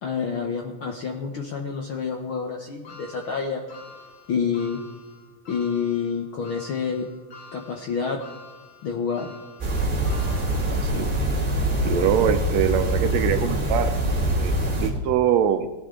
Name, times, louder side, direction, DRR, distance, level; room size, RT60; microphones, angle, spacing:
voice 1, 0.0-3.6 4.3-4.8 5.5-7.1 7.5-8.2 8.8-9.3, left 6 dB, 70° left, 2 dB, 1.2 m, -28 dB
sound 1, 2.8-11.2 11.7-11.8 13.0-13.1, left 3 dB, 45° left, 2.1 m, -47 dB
sound 2, 9.6-14.9, right 1 dB, 20° right, 2.2 m, -24 dB
voice 2, 10.7-11.1 11.8-13.9 14.3-15.7, right 9 dB, 75° right, 9 dB, 1.7 m, -23 dB
18.5 x 10.0 x 3.7 m, 1.4 s
omnidirectional pair, 3.5 m